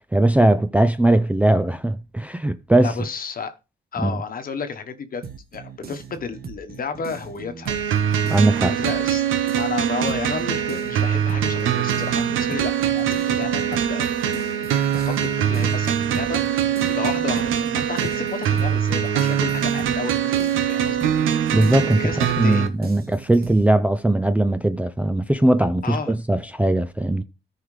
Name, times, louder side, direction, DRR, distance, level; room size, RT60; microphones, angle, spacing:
voice 1, 0.1-2.9 4.0-4.2 8.3-8.8 21.5-27.2, right 1 dB, 5° right, 0.4 m, -19 dB
voice 2, 2.8-3.6 3.9-8.4 8.8-9.3 9.6-14.2 14.6-21.1 21.9-22.7 25.8-26.1, left 5 dB, 45° left, 1.1 m, -32 dB
sound 1, 5.2-9.2 9.5-23.6, right 5 dB, 50° right, 1.3 m, -39 dB
sound 2, 7.7-22.7, right 9 dB, 85° right, 0.9 m, -23 dB
13.5 x 4.8 x 3.2 m
cardioid pair, 90°, 20 cm